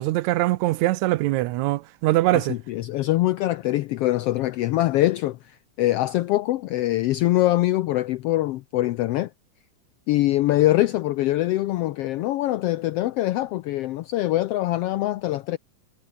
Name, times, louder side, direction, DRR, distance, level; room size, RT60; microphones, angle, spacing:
voice 1, 0.0-2.6, right 17 dB, 80° right, 2.0 m, -22 dB
voice 2, 2.3-9.3 10.1-15.6, left 15 dB, 80° left, 1.3 m, -23 dB
omnidirectional pair, 3.3 m